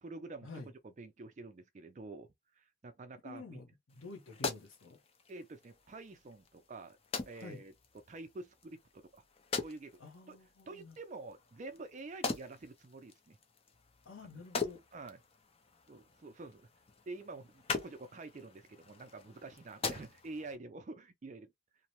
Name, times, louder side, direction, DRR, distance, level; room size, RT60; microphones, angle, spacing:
voice 1, 0.0-2.3 2.6-3.6 5.3-7.0 7.3-7.7 8.1-9.2 9.6-10.0 10.3-10.4 10.7-13.4 14.9-15.2 15.9-16.7 17.1-21.5, right 3 dB, 35° right, 0.4 m, -48 dB
voice 2, 3.2-5.0 7.4-7.6 10.0-11.0 14.0-14.8, left 3 dB, 90° left, 0.8 m, -49 dB
sound 1, 3.9-20.5, left 4 dB, 30° left, 0.4 m, -43 dB
2.6 x 2.0 x 2.9 m
head